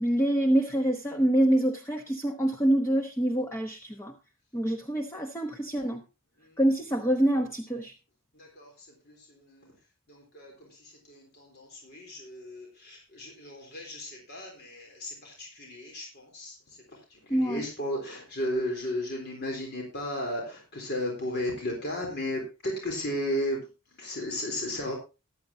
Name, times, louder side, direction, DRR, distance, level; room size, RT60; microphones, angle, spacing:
voice 1, 0.0-4.1 4.5-6.0 6.6-7.9 17.3-17.6, right 1 dB, 15° left, 3 dB, 1.0 m, -26 dB
voice 2, 8.3-9.7 10.1-16.8 17.1-23.6 24.0-24.9, left 1 dB, 50° left, 0 dB, 3.6 m, -35 dB
14.5 x 12.0 x 2.8 m, 0.29 s
head